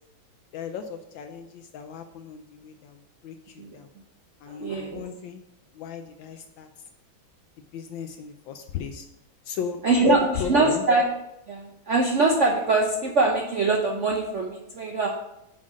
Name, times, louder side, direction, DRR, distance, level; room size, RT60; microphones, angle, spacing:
voice 1, 0.5-3.9 4.4-5.4 5.7-6.7 7.7-9.1 9.4-10.8, left 7 dB, 75° left, 7 dB, 1.3 m, -35 dB
voice 2, 4.5-5.0 9.8-11.1 11.5-15.1, right 3 dB, 55° right, 1 dB, 0.8 m, -23 dB
6.3 x 5.6 x 6.2 m, 0.84 s
omnidirectional pair, 2.2 m